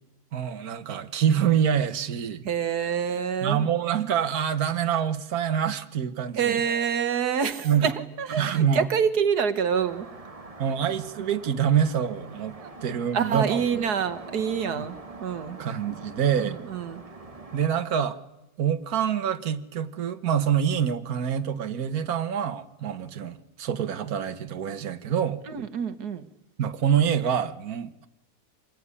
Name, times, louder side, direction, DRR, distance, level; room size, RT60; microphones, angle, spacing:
voice 1, 0.3-2.4 3.4-6.6 7.6-7.9 8.4-8.9 10.6-12.5 12.8-13.6 14.7-14.8 15.6-16.6 17.5-18.2 18.6-25.4 26.6-28.1, right 8 dB, 70° right, 9 dB, 1.7 m, -26 dB
voice 2, 2.4-3.7 6.3-10.1 10.7-10.8 12.6-12.7 13.1-15.6 16.4-17.0 25.5-26.2, right 7 dB, 90° right, 11 dB, 1.9 m, -27 dB
sound 1, 9.7-17.7, right 3 dB, 25° right, 1.4 m, -44 dB
26.0 x 20.5 x 9.8 m, 0.94 s
omnidirectional pair, 1.6 m